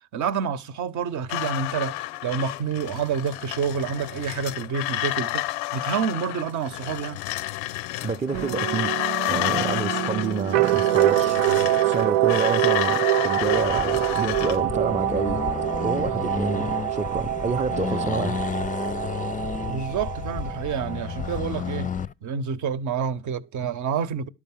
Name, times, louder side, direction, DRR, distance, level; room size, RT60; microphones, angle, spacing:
voice 1, 0.1-2.0 2.2-5.4 5.7-7.2 19.7-21.9 22.2-24.3, right 6 dB, 55° right, 1.0 m, -28 dB
sound 1, 1.3-14.6, left 17 dB, 85° left, 0.5 m, -30 dB
voice 2, 8.0-8.9 9.3-11.4 11.8-15.4 15.8-18.4, right 4 dB, 20° right, 0.6 m, -28 dB
sound 2, 8.3-21.9, right 14 dB, 85° right, 0.5 m, -25 dB
Accelerating revving vroom, 13.4-22.1, left 7 dB, 25° left, 0.5 m, -32 dB
12.0 x 4.9 x 7.3 m
hypercardioid pair, 65°, 35 cm